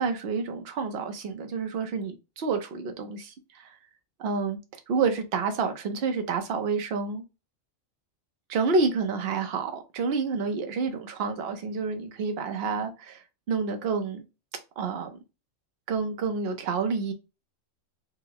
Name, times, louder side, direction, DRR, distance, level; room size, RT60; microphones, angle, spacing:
voice 1, 0.0-3.8 4.2-4.6 4.9-7.2 8.5-14.2 14.8-15.2 15.9-17.1, right 4 dB, 55° right, 0.8 m, -29 dB
3.7 x 2.1 x 2.7 m
omnidirectional pair, 1.4 m